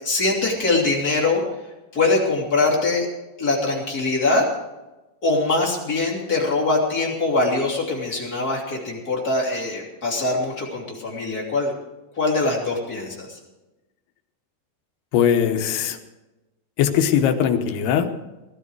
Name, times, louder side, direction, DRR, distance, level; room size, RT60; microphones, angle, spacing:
voice 1, 0.0-1.4 1.9-3.1 3.4-4.5 5.2-11.7 12.1-13.4, left 3 dB, 25° left, -2 dB, 2.6 m, -22 dB
voice 2, 15.1-16.0 16.8-18.1, left 8 dB, 75° left, 6 dB, 2.9 m, -20 dB
18.0 x 12.5 x 4.7 m, 1.1 s
omnidirectional pair, 4.9 m